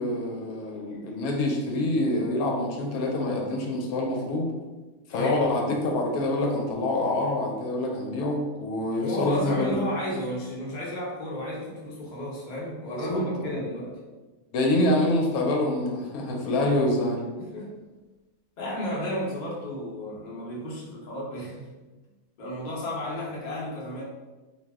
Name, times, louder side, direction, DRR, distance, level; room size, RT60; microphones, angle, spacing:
voice 1, 0.0-4.5 5.1-9.8 12.9-13.6 14.5-17.2, left 1 dB, 80° left, 0 dB, 1.0 m, -26 dB
voice 2, 5.1-5.4 9.0-14.0 17.4-17.7 18.6-21.8 22.4-24.0, equal, 40° left, -5 dB, 0.7 m, -33 dB
2.6 x 2.0 x 3.4 m, 1.2 s
omnidirectional pair, 1.5 m